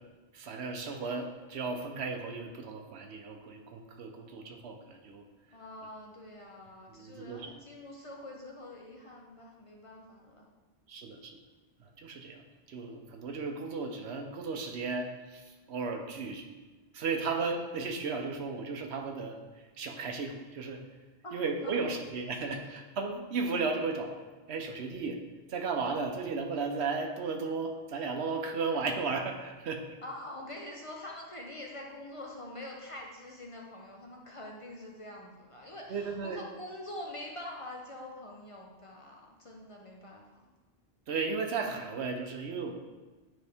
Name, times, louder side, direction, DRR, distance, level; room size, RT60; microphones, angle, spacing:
voice 1, 0.3-5.3 6.9-7.5 10.9-11.4 11.8-16.5 16.9-20.8 21.3-24.1 24.5-25.2 25.5-30.0 35.9-36.4 41.1-42.7, right 4 dB, 80° right, 3 dB, 1.0 m, -35 dB
voice 2, 5.5-10.5 21.2-21.9 22.6-22.7 30.0-40.5, left 1 dB, 35° left, -1 dB, 0.6 m, -45 dB
9.1 x 3.2 x 3.4 m, 1.3 s
omnidirectional pair, 1.1 m